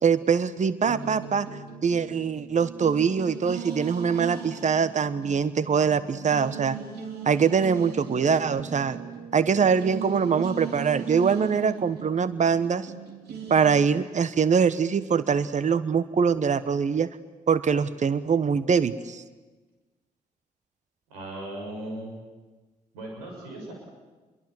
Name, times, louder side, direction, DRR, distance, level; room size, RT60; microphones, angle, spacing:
voice 1, 0.0-1.5 1.8-6.8 7.3-9.0 9.3-12.9 13.5-17.1 17.5-19.2, right 6 dB, 40° right, 15 dB, 1.2 m, -23 dB
sound 1, 0.8-13.9, right 7 dB, 60° right, 3.6 m, -38 dB
voice 2, 21.1-22.1 22.9-23.7, right 1 dB, 80° right, 0 dB, 6.5 m, -37 dB
28.5 x 22.5 x 8.0 m, 1.3 s
hypercardioid pair, 40°, 19 cm